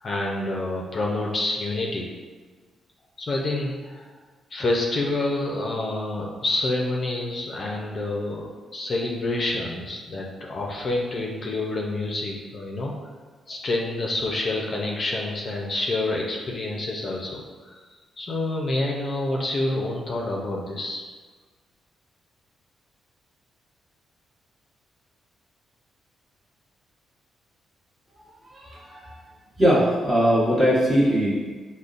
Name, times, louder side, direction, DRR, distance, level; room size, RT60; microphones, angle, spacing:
voice 1, 0.0-2.1 3.2-4.1 4.5-8.5 8.7-12.9 13.5-17.8 18.2-21.0, left 2 dB, 40° left, -1 dB, 0.5 m, -28 dB
voice 2, 28.5-29.1 29.6-31.3, equal, 25° right, -7 dB, 1.2 m, -20 dB
5.2 x 2.1 x 2.5 m, 1.4 s
cardioid pair, 100°, 0 cm